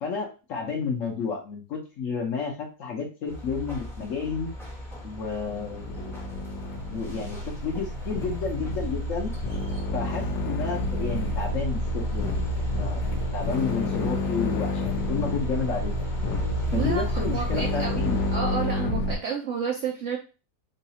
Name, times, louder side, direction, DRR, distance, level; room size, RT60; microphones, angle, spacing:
voice 1, 0.0-4.5 5.0-6.2 6.9-9.3 9.9-12.5 12.8-15.9 16.7-18.2, left 5 dB, 60° left, 1 dB, 1.0 m, -31 dB
sound 1, 3.3-18.4, left 1 dB, 5° left, 0.5 m, -35 dB
sound 2, 5.4-19.2, left 1 dB, 80° left, 1.3 m, -30 dB
voice 2, 16.7-18.1 18.3-20.2, right 6 dB, 65° right, 0 dB, 0.7 m, -31 dB
3.9 x 2.3 x 2.8 m, 0.31 s
omnidirectional pair, 1.8 m